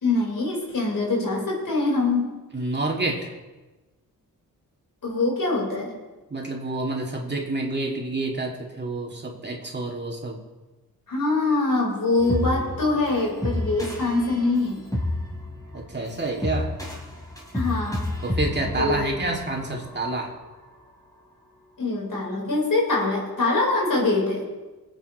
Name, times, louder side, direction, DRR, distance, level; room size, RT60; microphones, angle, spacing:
voice 1, 0.0-2.3 5.0-6.0 11.1-14.8 17.5-18.1 18.8-19.1 21.8-24.4, left 3 dB, 60° left, -3 dB, 5.0 m, -24 dB
voice 2, 2.5-3.4 6.3-10.4 15.7-16.8 18.2-20.3, right 2 dB, 30° right, -1 dB, 2.7 m, -28 dB
sound 1, 12.2-20.4, left 1 dB, 10° left, 3.3 m, -31 dB
24.0 x 8.9 x 3.3 m, 1.2 s
cardioid pair, 65°, 36 cm